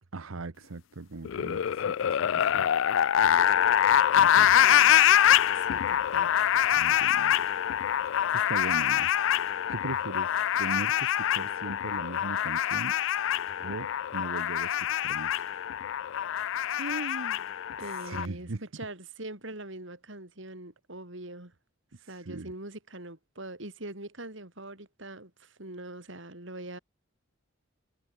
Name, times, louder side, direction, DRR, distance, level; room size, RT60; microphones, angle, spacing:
voice 1, 0.1-2.9 4.1-4.6 5.8-5.9 6.7-7.5 8.1-13.0 13.6-15.6 17.9-18.6 21.9-22.5, right 3 dB, 80° right, 0.9 m, -40 dB
sound 1, 1.2-18.3, left 10 dB, 70° left, 0.3 m, -25 dB
voice 2, 4.4-4.9 5.5-6.3 16.8-17.5 17.8-21.5 22.1-26.8, right 1 dB, 65° right, 4.2 m, -42 dB
head